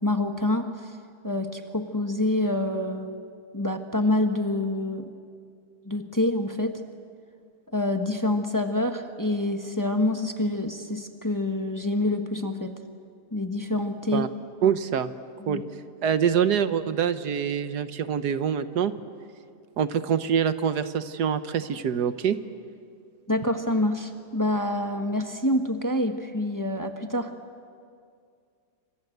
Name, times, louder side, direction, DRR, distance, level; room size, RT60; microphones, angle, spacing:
voice 1, 0.0-0.9 1.2-3.2 3.5-5.1 5.8-6.8 7.7-12.7 13.3-14.3 15.4-15.6 23.3-27.3, left 1 dB, 15° left, 6 dB, 1.2 m, -27 dB
voice 2, 14.6-15.1 15.5-15.6 16.0-18.9 19.8-22.4, right 8 dB, 80° right, 12 dB, 1.5 m, -25 dB
28.0 x 26.0 x 8.0 m, 2.3 s
omnidirectional pair, 1.7 m